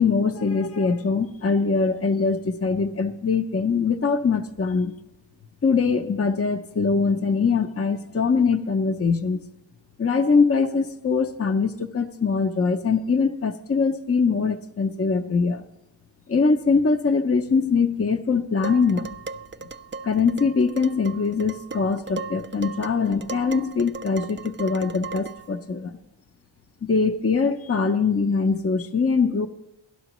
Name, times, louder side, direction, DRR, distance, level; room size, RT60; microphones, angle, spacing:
voice 1, 0.0-5.0 5.6-9.4 10.0-15.6 16.3-19.1 20.0-25.9 26.8-29.5, left 5 dB, 30° left, 5 dB, 0.5 m, -22 dB
Dishes pots and pans, 18.6-25.5, right 4 dB, 25° right, 0.3 m, -37 dB
16.5 x 11.5 x 3.0 m, 0.93 s
cardioid pair, 40°, 49 cm